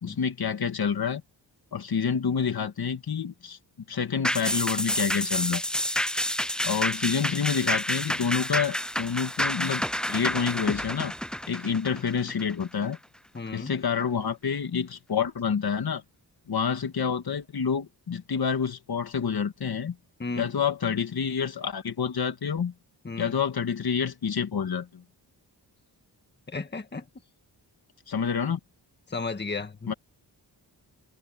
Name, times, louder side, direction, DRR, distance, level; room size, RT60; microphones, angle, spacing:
voice 1, 0.0-1.2 1.7-3.6 3.9-5.6 6.6-9.8 10.1-11.1 11.5-13.0 13.5-16.0 16.5-20.0 20.4-22.7 23.2-25.0 28.1-28.6 29.9-30.0, left 6 dB, 60° left, 2.0 m, -28 dB
sound 1, 4.2-13.0 13.4-13.5, equal, ahead, 0.6 m, -29 dB
voice 2, 13.3-13.7 20.2-20.5 23.0-23.4 26.5-27.1 29.1-29.9, left 3 dB, 25° left, 1.8 m, -34 dB
wide cardioid pair, 160°, 41 cm